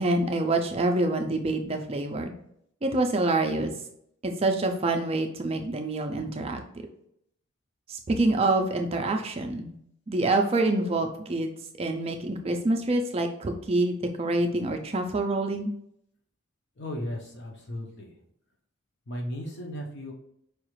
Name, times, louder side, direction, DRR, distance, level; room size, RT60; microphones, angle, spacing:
voice 1, 0.0-2.3 2.8-3.7 4.2-6.6 7.9-9.8 10.1-11.5 11.8-15.7, right 2 dB, 25° right, 5 dB, 0.4 m, -26 dB
voice 2, 16.8-18.1 19.1-20.1, left 1 dB, 50° left, 1 dB, 0.7 m, -35 dB
4.6 x 2.4 x 3.1 m, 0.72 s
head